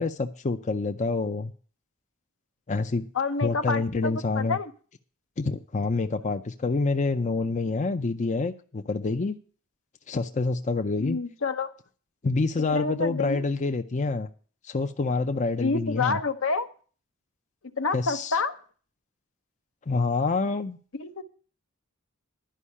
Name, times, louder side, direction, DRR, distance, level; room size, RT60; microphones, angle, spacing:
voice 1, 0.0-1.5 2.7-3.1 3.4-4.6 5.4-9.4 10.1-11.2 12.2-14.3 14.6-16.2 17.9-18.4 19.9-20.8, left 3 dB, 35° left, 7 dB, 0.5 m, -27 dB
voice 2, 3.1-4.7 11.0-11.7 12.7-13.4 15.6-16.7 17.8-18.6 20.9-21.2, left 4 dB, 70° left, 9 dB, 0.9 m, -28 dB
11.5 x 5.5 x 8.5 m, 0.41 s
head